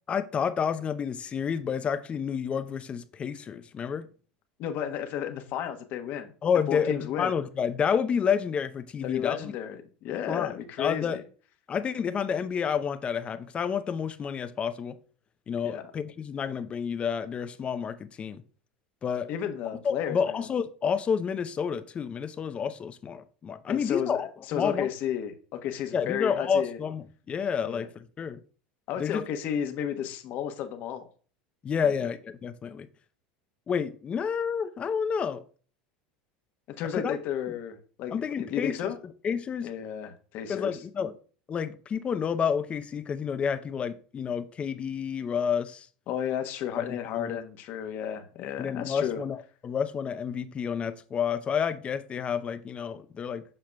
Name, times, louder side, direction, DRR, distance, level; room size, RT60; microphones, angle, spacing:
voice 1, 0.1-4.1 6.4-9.5 10.3-11.2 11.7-15.0 15.5-18.4 19.0-19.3 19.8-24.9 25.9-28.4 29.0-29.2 31.6-32.9 33.7-35.4 36.9-37.2 38.1-38.8 39.0-39.7 40.5-41.2 41.5-45.9 46.8-47.4 48.6-53.4, left 7 dB, 30° left, 0.6 m, -30 dB
voice 2, 4.6-6.3 6.7-7.3 9.0-11.2 15.6-15.8 19.3-20.5 23.7-24.2 24.5-26.8 27.6-27.9 28.9-31.1 31.8-31.9 36.7-39.0 39.6-40.8 46.1-49.2, left 9 dB, 55° left, 1.1 m, -33 dB
7.6 x 5.7 x 2.3 m
hypercardioid pair, 95°, 4 cm